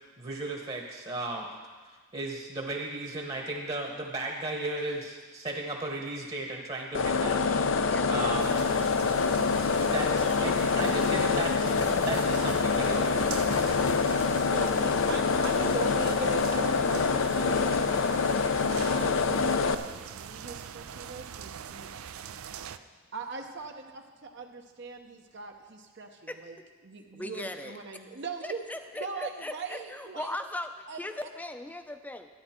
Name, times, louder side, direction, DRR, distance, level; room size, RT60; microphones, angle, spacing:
voice 1, 0.2-1.5 2.1-7.5 7.8-8.6 9.9-11.7 12.0-13.4, right 2 dB, 30° right, 0 dB, 1.1 m, -35 dB
sound 1, 6.9-19.7, left 5 dB, 65° left, 0.5 m, -26 dB
voice 2, 7.4-8.1 26.3-26.4 27.1-27.8 28.4-32.3, left 1 dB, 10° left, 8 dB, 0.5 m, -39 dB
sound 2, 8.4-22.8, right 8 dB, 85° right, 0.5 m, -43 dB
sound 3, 10.6-19.8 20.1-20.2 20.4-20.5 20.8-20.9 22.3-22.6 23.2-23.6, left 2 dB, 90° left, 1.0 m, -43 dB
voice 3, 14.4-17.7 18.6-21.9 23.1-23.7 24.2-26.6 26.8-28.6 29.0-30.3 30.9-31.3, right 4 dB, 55° right, 2 dB, 0.8 m, -40 dB
12.5 x 9.8 x 4.4 m, 1.4 s
head